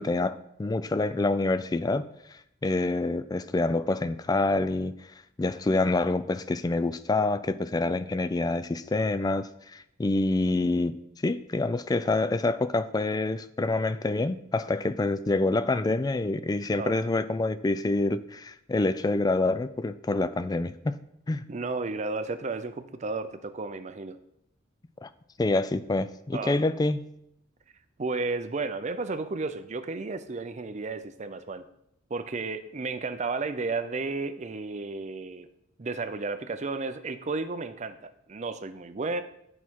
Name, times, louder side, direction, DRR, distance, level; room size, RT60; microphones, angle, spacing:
voice 1, 0.0-2.0 2.3-4.9 5.4-11.0 11.2-21.0 21.3-21.4 25.0-25.1 25.4-27.0, left 2 dB, 20° left, 13 dB, 0.3 m, -27 dB
voice 2, 21.5-24.2 26.3-26.6 28.0-31.7 32.1-35.5 35.8-39.2, right 3 dB, 35° right, 10 dB, 0.5 m, -33 dB
8.4 x 5.5 x 4.6 m, 0.77 s
head